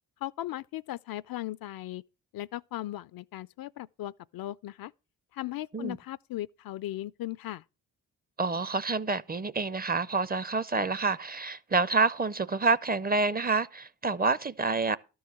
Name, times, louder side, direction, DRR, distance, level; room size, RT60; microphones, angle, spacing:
voice 1, 0.2-2.0 2.3-4.9 5.3-7.6, left 15 dB, 55° left, 0.5 m, -37 dB
voice 2, 8.4-15.0, right 4 dB, 20° right, 0.6 m, -28 dB
12.5 x 4.7 x 7.4 m
hypercardioid pair, 45°, 43 cm